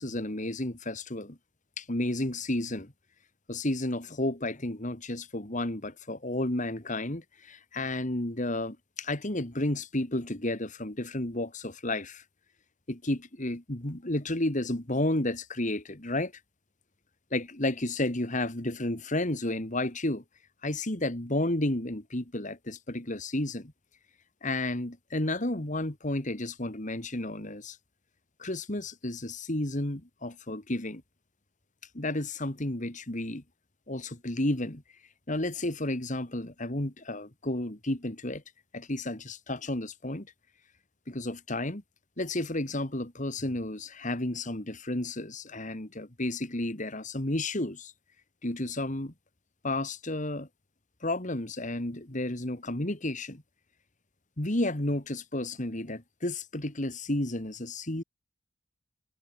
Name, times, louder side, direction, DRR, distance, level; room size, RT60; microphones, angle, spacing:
voice 1, 0.0-1.4 1.8-2.9 3.5-12.2 12.9-16.3 17.3-20.2 20.6-23.7 24.4-27.8 28.4-31.0 31.9-33.4 33.9-34.8 35.3-38.4 38.7-40.3 41.1-41.8 42.2-47.9 48.4-49.1 49.6-50.5 51.0-53.4 54.4-58.0, left 1 dB, 40° left, 2.4 m, -32 dB
head